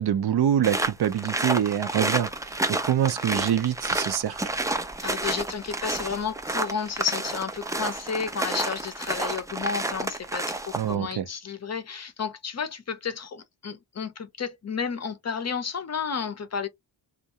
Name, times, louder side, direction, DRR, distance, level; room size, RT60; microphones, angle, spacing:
voice 1, 0.0-4.5 10.7-11.2, right 10 dB, 55° right, 0.6 m, -25 dB
sound 1, 0.6-10.9, right 2 dB, 10° right, 0.3 m, -30 dB
voice 2, 5.0-16.7, left 6 dB, 35° left, 0.6 m, -32 dB
2.4 x 2.2 x 2.7 m
cardioid pair, 85°, 46 cm